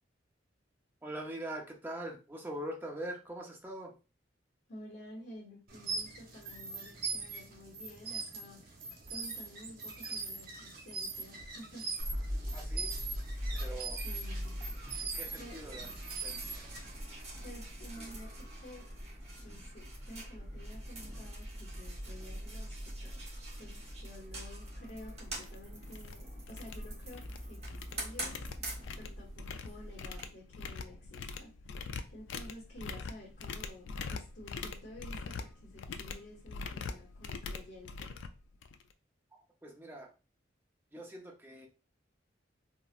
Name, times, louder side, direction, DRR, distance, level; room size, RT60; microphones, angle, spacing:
voice 1, 1.0-3.9 12.5-12.9 13.6-14.0 15.0-15.9 16.2-16.7 39.6-40.1 40.9-41.7, right 1 dB, 10° right, 1 dB, 0.6 m, -43 dB
voice 2, 4.7-8.7 9.1-11.9 14.0-14.6 15.3-15.7 17.4-18.9 19.4-23.2 23.6-28.5 29.0-38.1, left 1 dB, 70° left, -3 dB, 0.9 m, -51 dB
sound 1, 5.7-17.0, right 4 dB, 55° right, 0.8 m, -41 dB
sound 2, 12.0-30.2, equal, 35° right, 1.1 m, -42 dB
sound 3, 24.8-24.9 25.3-25.5 25.8-26.1 26.5-27.4 27.7-38.9, left 4 dB, 85° left, 0.3 m, -43 dB
3.8 x 2.1 x 2.4 m, 0.32 s
head